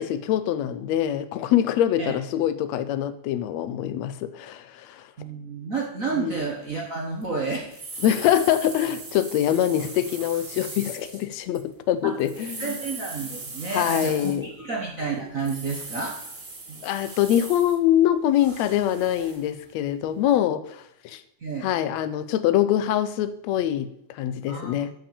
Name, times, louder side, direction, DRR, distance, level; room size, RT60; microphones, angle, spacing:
voice 1, 0.0-5.1 6.1-6.3 8.0-12.8 13.7-14.5 16.8-21.2 21.6-24.9, left 11 dB, 75° left, 1.7 m, -24 dB
voice 2, 5.2-7.8 12.0-12.1 12.6-16.1 16.7-16.8 21.4-21.7 24.5-24.8, right 4 dB, 50° right, 1.0 m, -30 dB
sound 1, 7.2-7.3 7.7-11.6 12.1-14.6 15.4-17.7 18.3-19.5 20.1-20.2, right 3 dB, 35° right, 3.0 m, -39 dB
12.0 x 5.8 x 7.0 m
omnidirectional pair, 3.6 m